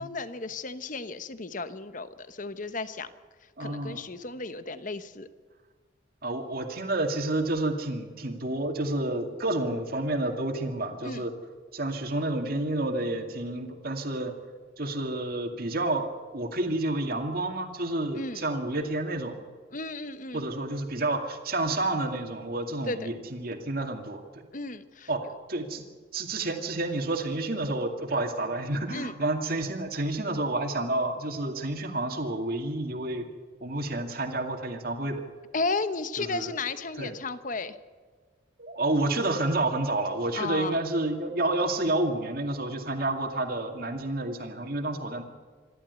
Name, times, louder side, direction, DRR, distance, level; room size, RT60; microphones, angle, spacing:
voice 1, 0.0-3.1 3.6-5.3 11.0-11.2 18.1-18.4 19.7-20.4 22.8-23.1 24.5-25.1 28.9-29.1 35.5-37.8 40.3-40.8, left 3 dB, 45° left, 12 dB, 1.0 m, -34 dB
voice 2, 3.6-4.0 6.2-11.3 11.7-14.3 14.8-16.1 16.3-19.4 20.3-24.2 25.1-25.2 25.5-25.8 26.1-33.2 33.6-35.2 36.2-36.5 37.0-37.1 38.6-45.2, right 2 dB, 50° right, 5 dB, 2.3 m, -29 dB
26.5 x 12.0 x 8.2 m, 1.5 s
head